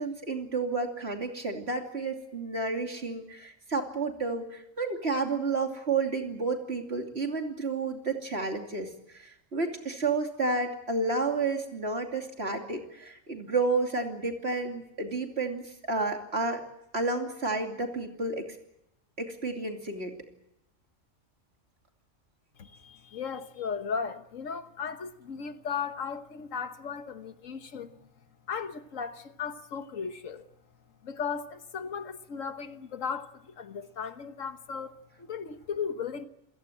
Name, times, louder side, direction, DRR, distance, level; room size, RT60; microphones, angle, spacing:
voice 1, 0.0-16.6 16.9-18.4 19.2-20.1, right 3 dB, 55° right, 3.1 m, -31 dB
voice 2, 22.6-28.1 28.5-30.5 31.0-36.3, left 6 dB, 85° left, 1.7 m, -36 dB
28.0 x 16.5 x 8.7 m
omnidirectional pair, 1.3 m